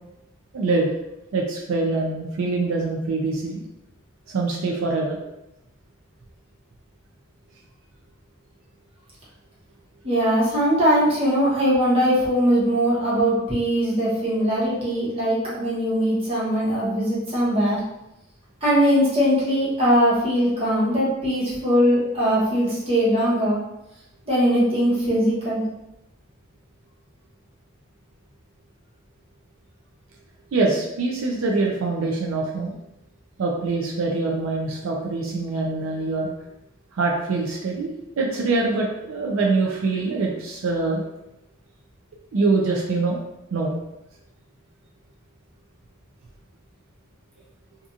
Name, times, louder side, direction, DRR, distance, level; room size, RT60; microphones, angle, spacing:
voice 1, 0.5-0.9 1.3-3.6 4.3-5.2 30.5-32.7 33.4-36.3 37.0-41.0 42.3-43.2 43.5-43.8, right 3 dB, 75° right, -1 dB, 0.4 m, -24 dB
voice 2, 10.0-17.8 18.6-23.6 24.3-25.6, equal, 30° right, -8 dB, 1.0 m, -21 dB
2.7 x 2.4 x 2.4 m, 0.89 s
head